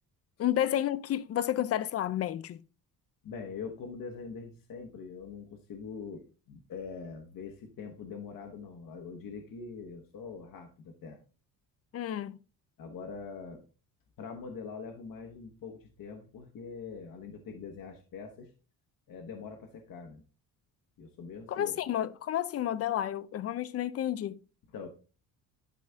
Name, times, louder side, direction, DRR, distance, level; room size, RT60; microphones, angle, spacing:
voice 1, 0.4-2.6 11.9-12.4 21.5-24.4, left 11 dB, 40° left, 0.5 m, -31 dB
voice 2, 3.2-11.2 12.8-13.6 14.2-18.5 19.1-20.2 21.0-21.7 24.7-24.9, left 5 dB, 55° left, 1.3 m, -43 dB
12.0 x 4.1 x 3.5 m
cardioid pair, 130°, 39 cm